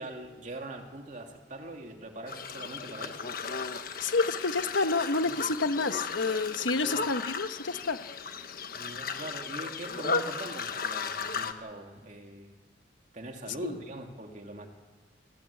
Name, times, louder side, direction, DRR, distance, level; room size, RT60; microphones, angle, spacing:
voice 1, 0.0-3.3 5.2-5.3 6.8-6.9 8.7-12.5 13.1-14.7, right 1 dB, 40° right, 3 dB, 2.8 m, -42 dB
sound 1, 2.3-11.5, left 5 dB, 50° left, 1.3 m, -35 dB
voice 2, 4.0-8.0 13.6-13.7, left 3 dB, 85° left, 9 dB, 1.2 m, -29 dB
26.5 x 15.5 x 8.5 m, 1.4 s
head